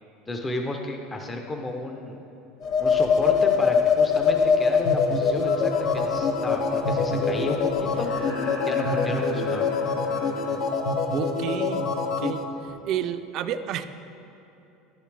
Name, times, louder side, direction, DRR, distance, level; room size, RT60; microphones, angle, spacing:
voice 1, 0.3-2.2 2.8-8.1 8.7-9.7, left 2 dB, 20° left, 3 dB, 0.6 m, -32 dB
sound 1, 2.6-12.4, left 5 dB, 55° left, 0.7 m, -24 dB
sound 2, 2.6-8.2, equal, 40° left, 1.4 m, -43 dB
sound 3, 5.8-5.9 7.7-10.6 12.7-12.8, left 2 dB, 80° left, 2.0 m, -38 dB
voice 2, 11.1-12.4 12.8-13.9, right 9 dB, 55° right, 11 dB, 0.4 m, -30 dB
11.0 x 6.4 x 3.3 m, 2.9 s
supercardioid pair, 110°, 0 cm